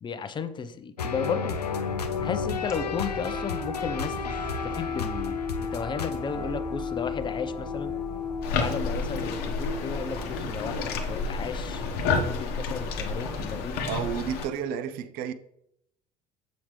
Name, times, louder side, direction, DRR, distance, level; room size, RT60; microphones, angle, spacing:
voice 1, 0.0-1.6 2.2-4.3 4.6-7.9 8.6-13.9, left 6 dB, 25° left, 0.6 m, -34 dB
sound 1, 1.0-11.5, left 6 dB, 85° left, 0.5 m, -33 dB
sound 2, 1.4-14.3, right 2 dB, 5° right, 1.5 m, -41 dB
sound 3, 8.4-14.5, left 4 dB, 55° left, 0.9 m, -30 dB
voice 2, 13.9-15.3, right 8 dB, 50° right, 0.5 m, -31 dB
7.1 x 5.0 x 3.2 m
figure-of-eight pair, 65°, 20 cm